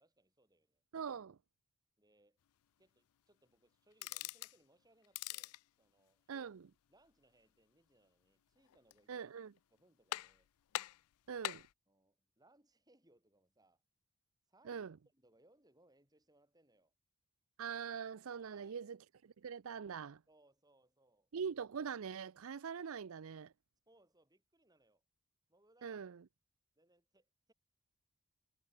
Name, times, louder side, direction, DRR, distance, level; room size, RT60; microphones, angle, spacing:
voice 1, 0.0-0.8 2.0-2.4 2.8-6.5 6.9-10.5 11.9-13.8 14.5-16.9 18.4-18.8 20.3-21.3 23.9-25.0 25.5-26.0 26.8-27.5, right 1 dB, 15° right, 7.8 m, -71 dB
voice 2, 0.9-1.4 6.3-6.6 9.1-9.5 11.3-11.6 14.6-15.0 17.6-20.2 21.3-23.5 25.8-26.2, right 6 dB, 65° right, 0.5 m, -43 dB
sound 1, 3.9-4.6 5.0-5.6 8.6-9.2 9.6-9.7 10.1-10.5 10.7-11.7, left 14 dB, 80° left, 0.4 m, -43 dB
head